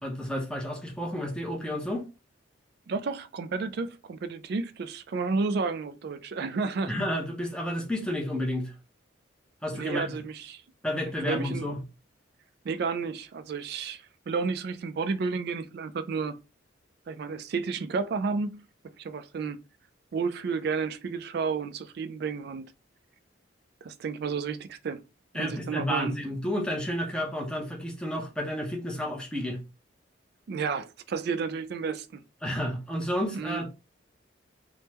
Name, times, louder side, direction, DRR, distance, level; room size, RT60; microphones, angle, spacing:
voice 1, 0.0-2.1 6.9-8.7 9.6-10.2 10.8-11.8 25.3-29.6 32.4-33.7, equal, 5° left, 0.6 m, -31 dB
voice 2, 2.9-6.9 9.7-10.6 11.3-11.7 12.6-16.4 17.1-18.6 19.0-19.6 20.1-22.6 23.8-25.0 25.4-26.1 30.5-32.2 33.3-33.6, right 4 dB, 55° right, 0.3 m, -31 dB
3.5 x 2.1 x 2.8 m
head